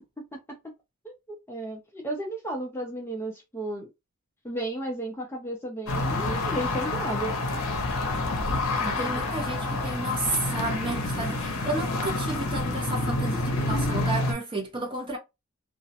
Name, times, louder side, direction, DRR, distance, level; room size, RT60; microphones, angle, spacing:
voice 1, 0.2-0.6 1.0-3.9 4.4-7.4 9.0-9.2, right 1 dB, 10° left, 0.4 m, -34 dB
sound 1, 5.9-14.3, left 2 dB, 65° left, 0.7 m, -28 dB
voice 2, 8.8-15.2, right 2 dB, 25° right, 0.8 m, -32 dB
2.4 x 2.1 x 2.7 m
head